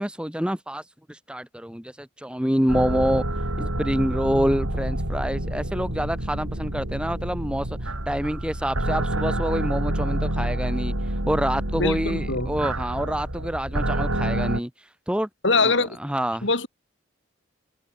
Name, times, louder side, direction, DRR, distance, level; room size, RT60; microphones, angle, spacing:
voice 1, 0.0-3.2 3.6-15.3 15.6-16.5, equal, 5° right, 1.1 m, -27 dB
sound 1, 2.7-14.6, right 1 dB, 90° right, 5.1 m, -28 dB
voice 2, 11.8-12.5 15.4-16.0 16.4-16.7, left 3 dB, 60° left, 3.7 m, -23 dB
head